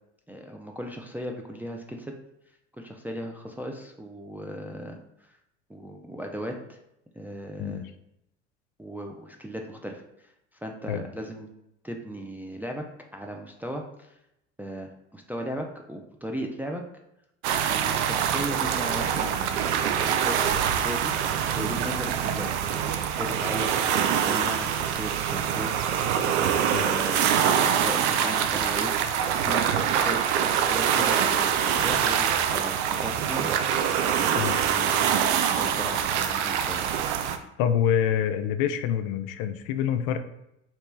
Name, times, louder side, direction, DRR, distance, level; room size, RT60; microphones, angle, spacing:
voice 1, 0.3-2.1 2.8-5.4 5.7-6.8 7.2-7.8 8.8-11.5 11.8-12.9 13.1-14.2 14.6-16.9 17.7-19.5 19.8-29.2 29.4-35.2 35.5-36.9, equal, 5° right, 2 dB, 0.3 m, -37 dB
sound 1, 17.4-37.4, right 8 dB, 70° right, 0.5 m, -25 dB
voice 2, 37.6-40.2, left 9 dB, 60° left, 9 dB, 0.4 m, -26 dB
3.1 x 3.0 x 3.3 m, 0.83 s
hypercardioid pair, 70°, 35 cm